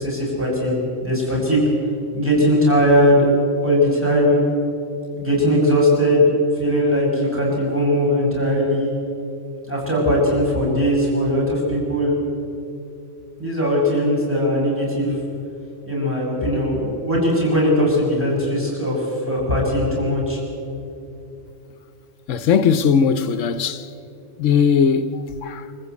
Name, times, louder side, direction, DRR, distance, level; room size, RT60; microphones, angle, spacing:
voice 1, 0.0-1.7 2.1-3.3 3.6-4.4 5.2-9.0 9.7-12.1 13.4-15.1 15.9-20.4, equal, 10° right, 7.4 m, -19 dB
voice 2, 22.3-23.9 24.4-25.7, left 6 dB, 85° left, 1.1 m, -19 dB
25.5 x 14.5 x 8.4 m
omnidirectional pair, 1.3 m